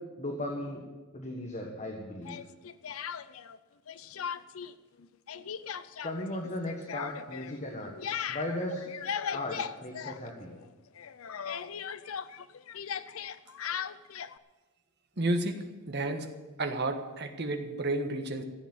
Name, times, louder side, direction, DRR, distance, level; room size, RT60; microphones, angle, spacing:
voice 1, 0.2-0.8 1.1-2.4 6.0-7.9 8.3-8.8 9.3-10.5, left 1 dB, 35° left, 1 dB, 1.5 m, -36 dB
Speech, 2.2-3.6 3.9-4.7 5.0-10.7 11.0-14.4, left 7 dB, 75° left, 0.5 m, -38 dB
voice 2, 15.2-16.3 16.6-18.4, right 2 dB, 50° right, 6 dB, 1.4 m, -31 dB
15.0 x 8.3 x 7.9 m, 1.3 s
head